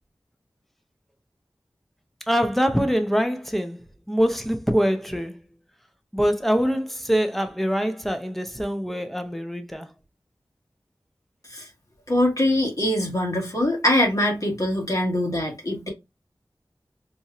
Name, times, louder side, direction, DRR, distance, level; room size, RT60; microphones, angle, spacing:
voice 1, 2.2-5.4 6.1-9.9, equal, ahead, 0.7 m, -24 dB
voice 2, 12.1-15.9, left 1 dB, 45° left, 1.8 m, -23 dB
4.2 x 2.6 x 2.4 m
wide cardioid pair, 50°, 8 cm